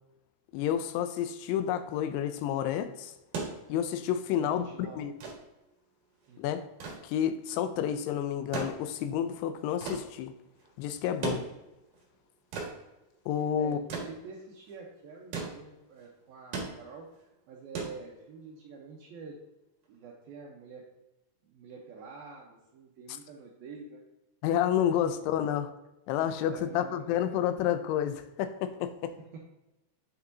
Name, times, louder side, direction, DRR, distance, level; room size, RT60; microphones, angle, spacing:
voice 1, 0.5-3.1 3.7-4.7 5.0-5.1 6.4-6.7 7.0-10.3 10.8-11.5 13.3-13.8 24.4-25.7 26.1-29.1, left 10 dB, 85° left, 10 dB, 2.9 m, -30 dB
sound 1, 3.1-18.6 19.8-19.9, right 4 dB, 55° right, 2.8 m, -40 dB
voice 2, 4.4-5.0 6.3-6.6 13.6-19.4 19.9-20.9 21.4-24.0 26.5-27.4 29.3-29.5, right 5 dB, 75° right, -2 dB, 2.2 m, -47 dB
8.7 x 6.6 x 2.7 m, 0.96 s
omnidirectional pair, 5.4 m